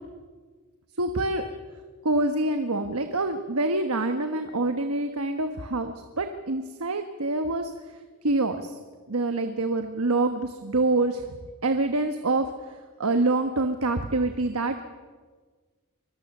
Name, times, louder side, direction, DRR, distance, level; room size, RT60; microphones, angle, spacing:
voice 1, 1.0-1.4 2.0-8.8 9.1-11.4 11.6-14.8, right 2 dB, 70° right, 7 dB, 1.3 m, -26 dB
24.0 x 21.0 x 6.7 m, 1.5 s
head